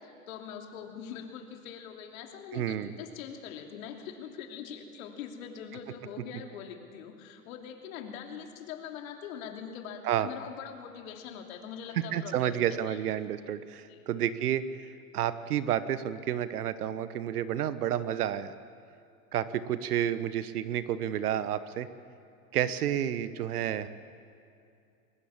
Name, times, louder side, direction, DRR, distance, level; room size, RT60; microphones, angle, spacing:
voice 1, 0.0-12.6 12.9-13.0 13.9-14.1, left 8 dB, 65° left, 3 dB, 3.1 m, -43 dB
voice 2, 2.5-2.9 10.0-10.3 12.1-14.7 15.1-18.5 19.3-21.9 22.5-23.9, right 10 dB, 80° right, 14 dB, 1.2 m, -30 dB
21.5 x 20.5 x 7.3 m, 2.5 s
hypercardioid pair, 120°, 45 cm